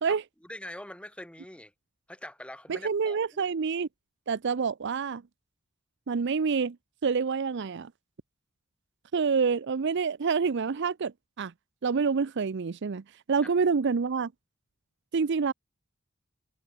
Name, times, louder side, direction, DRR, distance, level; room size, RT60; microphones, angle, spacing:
voice 1, 0.1-1.7 2.1-3.6 13.4-13.5, left 1 dB, 5° left, 5.2 m, -44 dB
voice 2, 2.7-3.9 4.3-5.2 6.1-6.8 7.0-7.9 9.1-11.1 11.4-11.5 11.8-13.0 13.3-14.3 15.1-15.5, right 5 dB, 55° right, 0.5 m, -27 dB
head